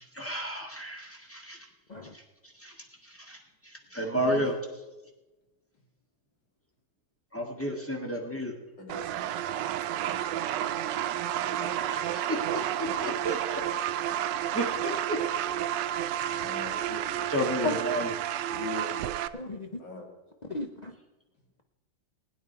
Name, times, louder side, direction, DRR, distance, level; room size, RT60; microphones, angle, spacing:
voice 1, 0.1-1.6 2.6-2.7 3.1-3.4 3.9-4.6 7.3-8.5 11.9-12.4 12.8-13.6 14.5-15.2 17.3-18.1, equal, 10° left, 1 dB, 1.7 m, -31 dB
voice 2, 8.8-9.1 11.3-11.6 16.4-17.1 18.5-19.0 19.8-20.1, left 3 dB, 90° left, 0 dB, 3.4 m, -40 dB
sound 1, 8.9-19.3, right 11 dB, 85° right, 1.3 m, -31 dB
voice 3, 11.6-12.0 17.6-17.7 19.3-19.8 20.5-20.9, left 2 dB, 55° left, 3 dB, 0.4 m, -35 dB
20.0 x 9.2 x 4.5 m, 1.1 s
omnidirectional pair, 1.9 m